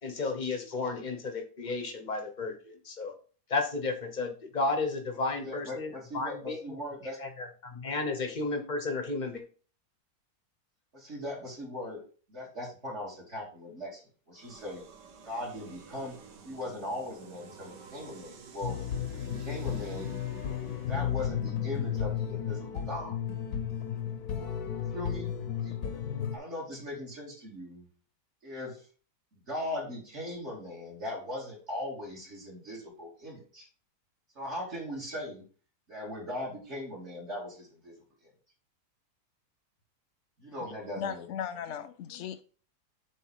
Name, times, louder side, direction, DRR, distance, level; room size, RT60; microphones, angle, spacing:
voice 1, 0.0-3.1 3.5-6.6 7.2-9.4, left 3 dB, 30° left, 1.0 m, -33 dB
voice 2, 5.4-7.2 10.9-12.0 12.3-14.0 14.3-14.8 15.2-16.2 16.4-18.8 19.1-20.1 20.8-23.1 24.9-25.3 25.6-25.8 26.3-27.9 28.4-28.8 29.3-33.7 34.3-35.4 35.9-37.9 38.2-38.3 40.4-41.2, left 1 dB, 40° right, 2.5 m, -39 dB
sound 1, 14.4-21.3, right 6 dB, 80° right, 1.6 m, -50 dB
sound 2, 18.6-26.4, left 9 dB, 65° left, 1.3 m, -33 dB
voice 3, 40.6-42.4, left 8 dB, 80° left, 0.6 m, -38 dB
7.7 x 3.3 x 4.8 m
omnidirectional pair, 1.8 m